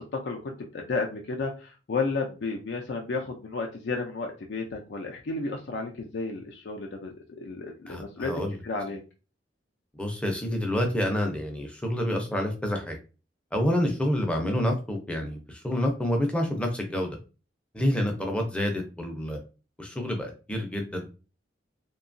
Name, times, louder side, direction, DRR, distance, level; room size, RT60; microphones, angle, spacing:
voice 1, 0.0-8.3 8.6-9.0, left 3 dB, 70° left, 2 dB, 0.4 m, -32 dB
voice 2, 7.9-8.6 10.0-13.0 13.5-17.2 17.7-19.4 19.8-21.1, left 1 dB, 5° left, 2 dB, 0.5 m, -28 dB
2.7 x 2.2 x 2.5 m, 0.33 s
head